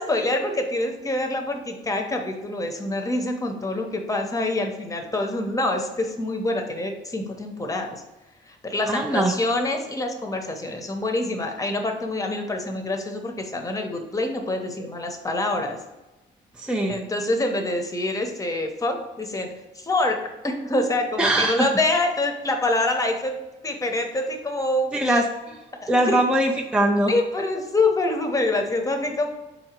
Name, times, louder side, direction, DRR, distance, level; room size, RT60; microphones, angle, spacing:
voice 1, 0.0-8.0 8.5-15.8 16.9-23.4 23.6-25.2 25.8-26.2 27.1-29.3, left 2 dB, 15° left, 4 dB, 0.8 m, -26 dB
voice 2, 8.9-9.3 16.6-17.0 21.2-21.7 24.9-25.2 25.9-27.1, right 1 dB, 5° right, 1 dB, 0.4 m, -21 dB
4.4 x 2.8 x 4.3 m, 1.1 s
cardioid pair, 90°, 20 cm